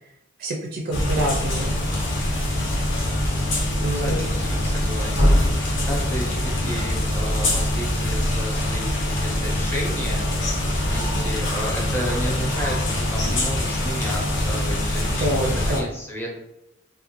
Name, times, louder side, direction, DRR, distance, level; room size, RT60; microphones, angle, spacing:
voice 1, 0.4-1.7 3.0-3.2 3.8-4.2 11.2-11.3 15.1-15.8, right 1 dB, 45° right, 0 dB, 0.4 m, -27 dB
sound 1, 0.9-15.8, left 1 dB, 65° left, 0.7 m, -23 dB
voice 2, 3.9-16.4, equal, 10° left, -3 dB, 0.6 m, -32 dB
2.5 x 2.1 x 2.9 m, 0.86 s
head